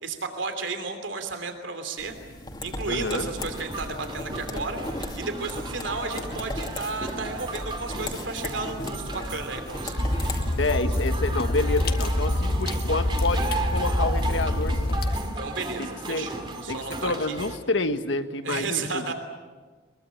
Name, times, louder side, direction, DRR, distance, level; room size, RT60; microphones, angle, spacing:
voice 1, 0.0-2.1 2.6-10.3 15.4-17.4 18.4-19.1, right 4 dB, 90° right, 7 dB, 3.0 m, -33 dB
sound 1, 2.0-10.4, left 1 dB, 25° left, 2.5 m, -36 dB
voice 2, 2.9-3.3 10.6-15.0 15.8-16.3 16.7-19.1, left 2 dB, 85° left, 8 dB, 1.6 m, -28 dB
sound 2, 3.4-17.6, right 2 dB, 25° right, 2.2 m, -36 dB
sound 3, 10.0-15.2, left 1 dB, 55° left, 1.7 m, -25 dB
23.5 x 22.5 x 8.6 m, 1.4 s
head